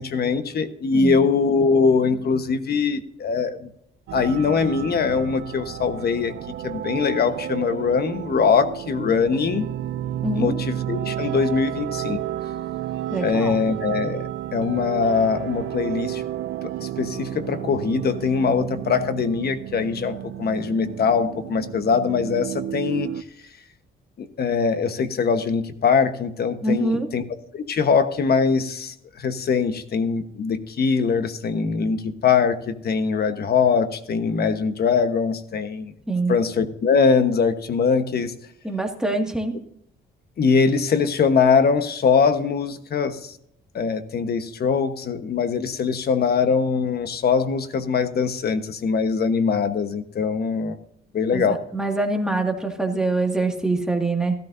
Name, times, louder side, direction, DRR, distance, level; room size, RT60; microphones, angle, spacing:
voice 1, 0.0-3.6 4.1-6.3 6.6-9.7 10.3-12.2 13.2-16.2 16.8-23.1 24.2-27.2 27.5-35.9 36.3-38.3 40.4-43.3 43.7-50.8 51.1-51.6, left 5 dB, 55° left, 10 dB, 1.2 m, -22 dB
sound 1, 4.1-23.2, right 12 dB, 75° right, 0.5 m, -31 dB
voice 2, 10.2-10.6 13.1-13.6 26.6-27.1 36.1-36.4 38.6-39.6 51.3-54.4, right 2 dB, 5° right, 2 dB, 2.0 m, -24 dB
14.5 x 13.0 x 2.7 m, 0.71 s
cardioid pair, 90°, 20 cm